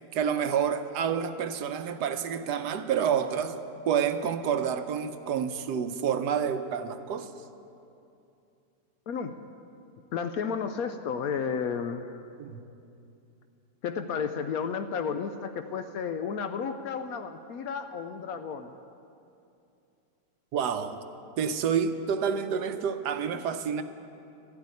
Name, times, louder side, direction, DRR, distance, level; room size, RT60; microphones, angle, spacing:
voice 1, 0.1-3.6 3.9-7.3 12.4-12.6 20.5-21.0 21.4-23.8, right 7 dB, 75° right, 9 dB, 1.2 m, -28 dB
voice 2, 9.1-9.5 10.1-12.2 13.8-18.7, left 6 dB, 70° left, 8 dB, 0.9 m, -32 dB
13.0 x 8.3 x 9.6 m, 2.7 s
omnidirectional pair, 1.9 m